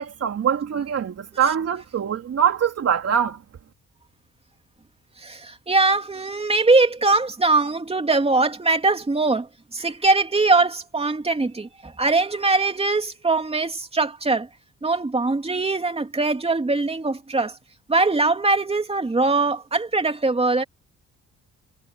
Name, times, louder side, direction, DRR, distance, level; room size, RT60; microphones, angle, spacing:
voice 1, 0.0-3.4, right 8 dB, 55° right, 2.8 m, -23 dB
voice 2, 5.2-14.5 14.8-17.6 17.9-20.6, right 3 dB, 20° right, 3.1 m, -21 dB
cardioid pair, 90°, 30 cm